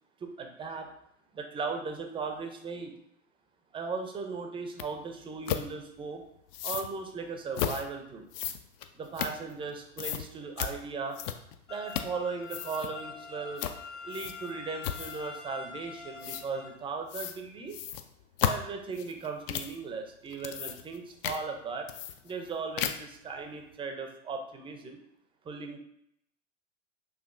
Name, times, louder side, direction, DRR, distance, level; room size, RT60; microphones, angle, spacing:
voice 1, 0.2-0.9 1.3-2.9 3.7-6.2 6.6-8.3 8.9-11.2 11.7-13.7 14.0-17.7 18.4-21.9 22.2-25.0 25.4-25.8, right 4 dB, 15° right, 4 dB, 0.5 m, -37 dB
sound 1, 4.8-4.9 5.5-5.7 6.5-6.9 7.5-7.8 8.3-9.7 10.0-10.2 10.6-10.7 11.1-11.6 11.9-12.2 12.4-12.9 13.6-13.8 14.1-14.5 14.8-15.3 16.2-16.4 17.1-17.4 17.7-19.8 20.3-21.0 21.2-21.4 21.9-22.5 22.8-23.2, left 9 dB, 50° left, 0.4 m, -34 dB
sound 2, 11.7-16.7, left 5 dB, 80° left, 1.4 m, -45 dB
6.4 x 2.6 x 2.5 m, 0.74 s
hypercardioid pair, 95°, 37 cm